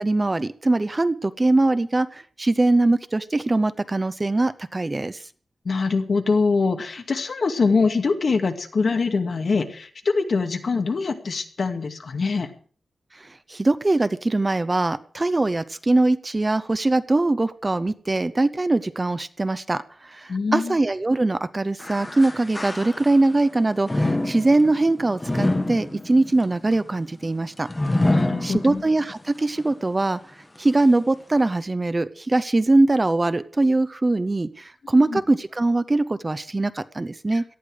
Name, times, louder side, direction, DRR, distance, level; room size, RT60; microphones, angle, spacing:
voice 1, 0.0-5.2 13.5-27.7 28.4-30.2 30.6-37.4, right 2 dB, 25° right, 14 dB, 0.7 m, -22 dB
voice 2, 5.6-12.5 20.3-20.8 28.1-28.8 34.9-35.2 37.3-37.4, left 4 dB, 60° left, 5 dB, 2.3 m, -24 dB
sound 1, 21.8-23.4 23.8-29.1 29.6-29.7 30.5-30.6, left 1 dB, 15° left, 1.7 m, -26 dB
18.0 x 13.5 x 5.0 m, 0.44 s
wide cardioid pair, 150°, 0 cm